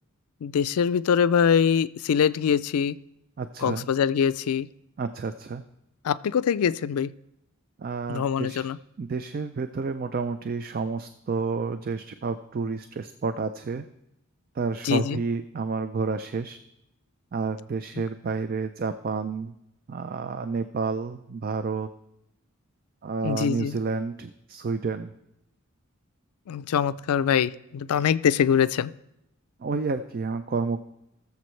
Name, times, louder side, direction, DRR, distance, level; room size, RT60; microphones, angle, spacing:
voice 1, 0.4-2.9 3.6-4.7 6.0-7.1 8.1-8.8 14.8-15.2 23.2-23.8 26.5-28.9, left 7 dB, 85° left, 16 dB, 0.4 m, -23 dB
voice 2, 3.4-3.9 5.0-5.6 7.8-8.7 9.0-13.8 14.5-16.6 17.3-19.5 19.9-21.9 23.0-25.1 29.6-30.8, right 4 dB, 40° right, 10 dB, 0.3 m, -30 dB
19.5 x 7.1 x 3.2 m, 0.84 s
head